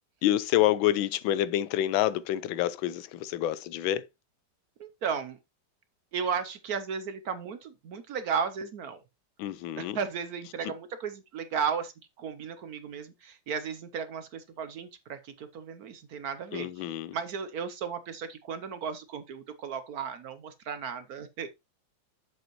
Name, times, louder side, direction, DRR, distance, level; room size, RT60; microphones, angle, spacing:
voice 1, 0.2-4.1 9.4-10.0 16.5-17.1, left 13 dB, 85° left, 1.4 m, -27 dB
voice 2, 4.8-5.4 6.1-9.0 9.8-21.5, right 6 dB, 65° right, 1.0 m, -35 dB
7.7 x 7.5 x 3.0 m
omnidirectional pair, 2.1 m